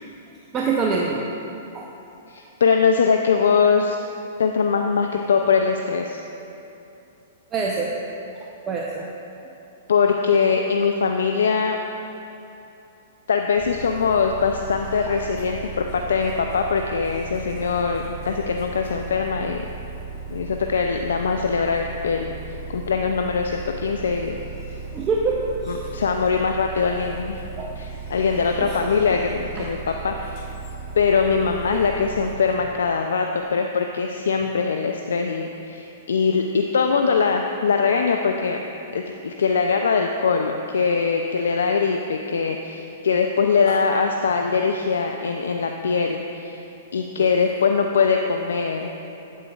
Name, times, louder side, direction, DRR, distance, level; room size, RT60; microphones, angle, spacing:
voice 1, 0.5-1.2 1.7-1.9 7.5-7.9 8.4-9.1 15.1-15.2 24.9-25.4 25.6-25.9 27.6-27.7 28.6-28.8 29.6-29.9 31.7-31.8 43.7-43.8 47.2-47.3, right 4 dB, 25° right, -2 dB, 0.6 m, -26 dB
voice 2, 2.3-4.0 4.4-6.2 9.9-11.8 13.3-19.7 20.3-24.4 24.7-24.8 25.7-27.4 27.8-30.4 31.0-38.6 38.9-46.6 46.9-48.9, left 5 dB, 75° left, 4 dB, 0.3 m, -22 dB
sound 1, 13.6-32.4, right 4 dB, 45° left, 1.2 m, -36 dB
8.3 x 8.3 x 2.3 m, 2.9 s
hypercardioid pair, 115°, 0 cm